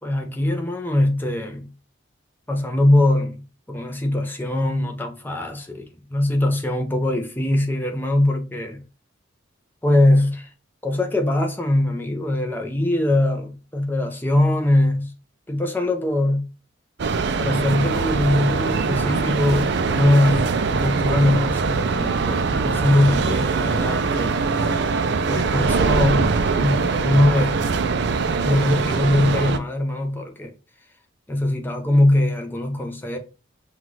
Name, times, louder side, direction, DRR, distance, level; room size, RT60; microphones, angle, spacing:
voice 1, 0.0-1.7 2.5-8.8 9.8-10.5 10.8-15.1 15.5-16.4 17.4-24.4 25.3-27.6 28.4-30.5 31.3-33.2, left 1 dB, 10° left, 0.6 m, -21 dB
sound 1, 17.0-29.6, right 4 dB, 60° right, 0.4 m, -22 dB
5.7 x 2.4 x 3.1 m
head